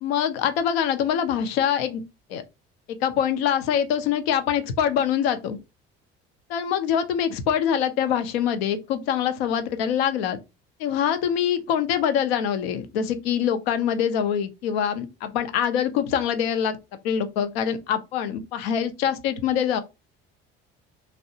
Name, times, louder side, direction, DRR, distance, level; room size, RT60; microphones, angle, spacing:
voice 1, 0.0-2.0 2.3-2.4 2.9-5.6 6.5-10.4 10.8-16.8 17.0-19.8, left 8 dB, 85° left, 0.5 m, -24 dB
2.7 x 2.1 x 2.7 m
hypercardioid pair, 65°, 30 cm